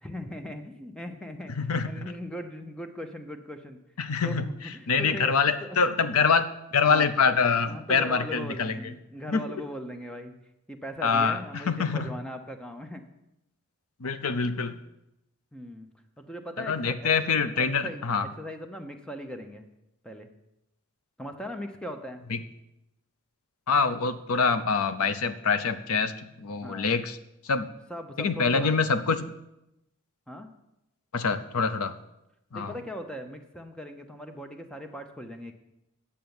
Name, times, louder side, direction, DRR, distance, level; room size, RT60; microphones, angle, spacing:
voice 1, 0.0-1.6 1.9-3.8 4.2-5.3 5.6-5.8 6.8-7.1 7.7-10.3 10.7-13.0 15.5-15.9 16.2-19.7 20.0-20.3 21.2-22.2 26.6-26.9 27.9-28.7 30.3-30.5 32.5-35.5, equal, 5° left, 6 dB, 0.7 m, -39 dB
voice 2, 1.6-2.0 4.0-4.5 4.9-6.5 6.7-8.8 9.3-9.4 11.0-12.1 14.0-14.8 16.6-18.3 22.3-22.4 23.7-27.2 27.4-27.7 28.2-29.3 31.1-31.9 32.5-32.7, left 5 dB, 75° left, 12 dB, 0.7 m, -25 dB
9.3 x 6.8 x 7.1 m, 0.88 s
head